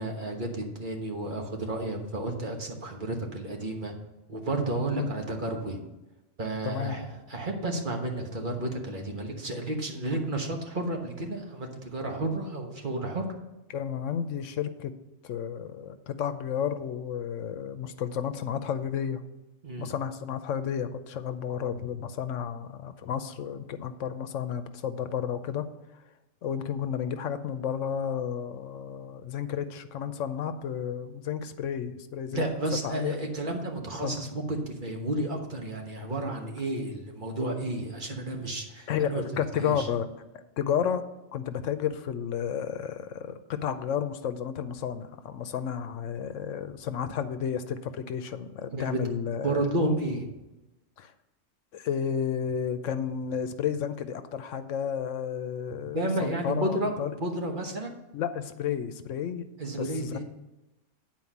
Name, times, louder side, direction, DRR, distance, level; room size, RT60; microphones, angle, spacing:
voice 1, 0.0-4.0 4.3-5.8 6.4-13.3 19.6-19.9 32.3-39.3 39.5-39.9 48.7-49.0 49.4-50.3 55.9-56.9 57.2-58.0 59.6-60.2, right 1 dB, 40° right, 2 dB, 1.3 m, -31 dB
voice 2, 6.6-7.0 13.7-14.9 15.2-19.2 19.8-25.7 26.4-32.4 32.8-33.1 34.0-34.2 38.9-41.0 41.3-49.6 51.0-51.1 51.7-57.1 58.1-59.4 59.8-60.2, left 8 dB, 80° left, 10 dB, 1.0 m, -32 dB
9.5 x 4.5 x 7.2 m, 1.0 s
omnidirectional pair, 1.3 m